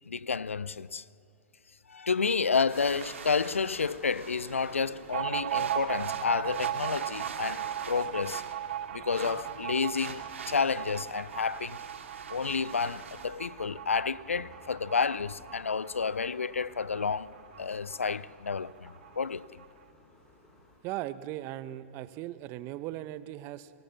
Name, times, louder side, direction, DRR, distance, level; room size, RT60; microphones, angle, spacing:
voice 1, 0.1-1.0 1.9-8.4 8.9-10.2 10.5-11.8 12.3-17.3 17.6-19.5, left 5 dB, 85° left, 0.5 m, -30 dB
sound 1, 2.6-20.8, left 2 dB, 10° left, 7.3 m, -58 dB
sound 2, 2.7-13.2, right 5 dB, 75° right, 2.2 m, -45 dB
sound 3, 5.1-18.2 18.5-18.6 18.9-19.7, right 11 dB, 60° right, 0.6 m, -37 dB
voice 2, 20.8-23.7, right 14 dB, 35° right, 0.9 m, -38 dB
25.5 x 18.0 x 7.0 m
figure-of-eight pair, 110°, 7 cm